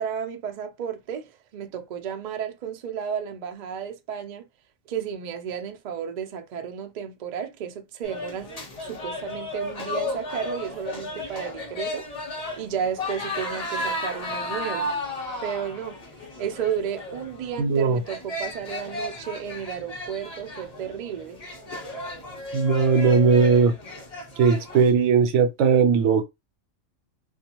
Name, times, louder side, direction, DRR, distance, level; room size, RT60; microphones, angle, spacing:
voice 1, 0.0-4.4 4.9-8.5 8.8-12.1 12.6-14.9 15.4-16.0 16.4-21.4, right 8 dB, 90° right, 0.3 m, -33 dB
sound 1, 8.0-24.9, left 1 dB, 35° left, 0.8 m, -34 dB
voice 2, 17.6-18.0 22.5-23.7 24.4-26.3, right 5 dB, 70° right, 0.8 m, -19 dB
2.4 x 2.3 x 2.9 m
omnidirectional pair, 1.3 m